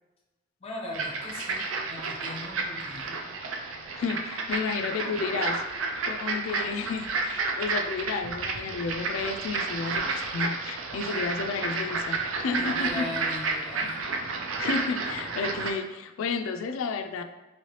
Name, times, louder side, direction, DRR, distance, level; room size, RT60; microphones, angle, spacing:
voice 1, 0.6-3.2 11.1-11.2 12.5-14.0, left 2 dB, 30° left, -2 dB, 0.7 m, -39 dB
sound 1, 0.9-15.7, right 3 dB, 85° right, 0.4 m, -31 dB
voice 2, 4.0-13.0 14.6-17.2, left 4 dB, 90° left, 9 dB, 0.3 m, -32 dB
3.1 x 3.1 x 2.8 m, 1.1 s
head